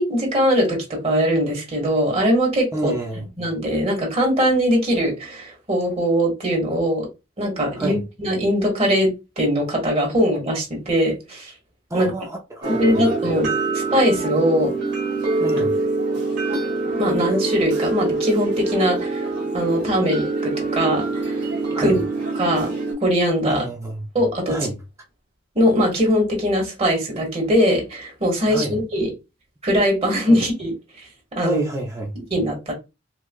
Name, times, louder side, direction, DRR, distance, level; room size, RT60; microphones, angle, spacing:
voice 1, 0.0-7.1 7.4-9.1 9.4-11.5 11.9-12.1 12.7-14.7 17.0-19.2 19.5-21.4 21.8-22.0 22.4-22.7 23.0-23.6 24.1-24.6 25.5-29.1 29.6-30.7 31.3-31.6 32.3-32.7, equal, 30° right, 1.7 m, -21 dB
voice 2, 2.7-3.2 7.7-8.0 11.9-13.1 15.4-15.7 21.7-22.0 23.4-24.1 24.5-24.8 28.5-28.7 30.3-30.4 31.4-32.2, right 1 dB, 15° right, 0.6 m, -28 dB
sound 1, 12.6-22.9, right 3 dB, 55° right, 1.6 m, -24 dB
4.6 x 2.3 x 2.3 m
head